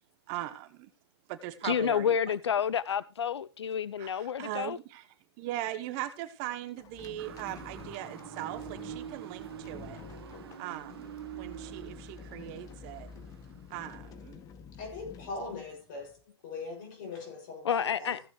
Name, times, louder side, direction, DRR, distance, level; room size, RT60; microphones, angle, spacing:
voice 1, 0.3-0.9 1.3-2.3 4.0-5.1 5.4-10.0 10.6-13.1 13.7-14.4, right 14 dB, 35° right, 1.2 m, -39 dB
voice 2, 1.6-4.8 17.6-18.2, left 8 dB, 80° left, 0.4 m, -29 dB
sound 1, 6.8-16.2, left 6 dB, 25° left, 1.3 m, -49 dB
Motor vehicle (road) / Siren, 7.2-13.9, right 12 dB, 60° right, 1.3 m, -46 dB
voice 3, 14.8-18.2, left 3 dB, 50° left, 6.9 m, -41 dB
16.0 x 8.8 x 3.3 m
hypercardioid pair, 125°, 14 cm